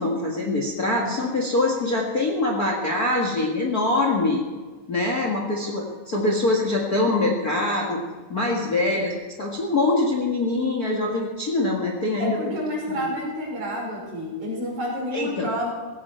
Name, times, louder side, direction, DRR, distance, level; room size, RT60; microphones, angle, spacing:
voice 1, 0.0-4.4 4.9-8.0 8.3-12.4 13.0-13.1 15.1-15.5, left 2 dB, 35° left, 0 dB, 1.6 m, -24 dB
voice 2, 12.2-15.7, equal, 65° right, -3 dB, 6.5 m, -29 dB
18.0 x 15.5 x 4.5 m, 1.3 s
omnidirectional pair, 3.8 m